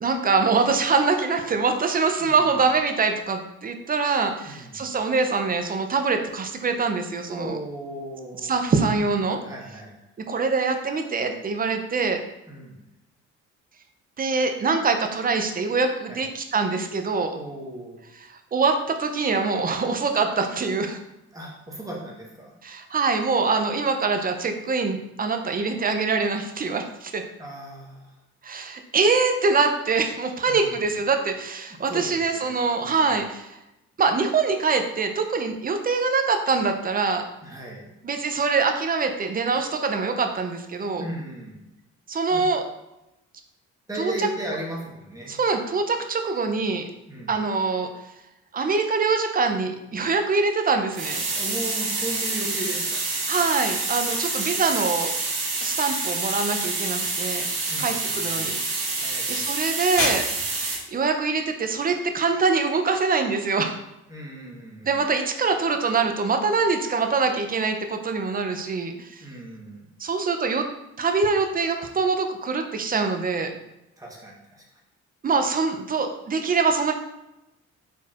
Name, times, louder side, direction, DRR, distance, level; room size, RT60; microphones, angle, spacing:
voice 1, 0.0-7.6 8.5-9.4 10.3-12.2 14.2-17.4 18.5-21.0 22.6-27.2 28.4-33.6 34.0-37.2 38.0-41.0 42.1-42.6 44.0-44.1 45.3-46.9 47.3-47.9 48.5-51.2 53.3-55.1 55.6-57.5 57.8-60.3 60.6-63.8 64.8-69.2 70.0-70.6 71.0-73.5 75.2-76.9, right 4 dB, 30° right, 5 dB, 0.5 m, -24 dB
voice 2, 2.2-2.6 4.4-4.9 7.3-8.5 9.4-10.0 12.5-12.8 16.1-16.2 17.3-18.0 21.3-22.5 27.4-28.2 30.5-31.0 31.9-33.2 37.4-37.9 41.0-41.6 42.3-42.4 43.9-45.4 47.1-47.4 51.3-53.1 57.7-58.6 58.9-59.5 64.1-65.0 69.2-69.9 74.0-74.6, right 1 dB, 10° right, -3 dB, 1.1 m, -36 dB
sound 1, 50.9-60.8, right 3 dB, 90° right, 1.3 m, -27 dB
sound 2, 52.4-63.0, left 2 dB, 75° left, 1.5 m, -38 dB
4.4 x 4.0 x 2.4 m, 0.91 s
cardioid pair, 90°, 30 cm